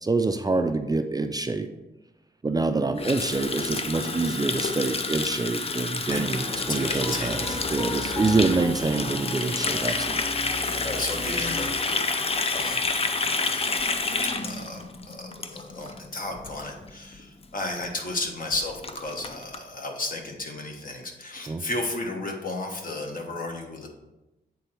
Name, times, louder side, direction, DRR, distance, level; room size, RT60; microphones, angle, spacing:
voice 1, 0.0-1.7 2.4-10.3 21.5-21.6, right 3 dB, 20° right, 7 dB, 0.4 m, -26 dB
Water tap faucet, 3.0-16.0 16.3-16.5 16.8-17.2 17.4-17.5 17.7-17.8 18.2-18.3 18.5-19.6, left 3 dB, 35° left, 0.5 m, -29 dB
voice 2, 6.1-7.4 8.0-8.2 9.0-9.1 10.8-12.2 12.5-12.9 14.4-23.9, left 2 dB, 55° left, 1 dB, 1.3 m, -34 dB
sound 1, 6.1-11.8, left 1 dB, 20° left, 1.1 m, -36 dB
sound 2, 13.7-18.2, left 1 dB, 70° left, 1.8 m, -45 dB
8.1 x 3.9 x 4.4 m, 0.98 s
wide cardioid pair, 110°, 17 cm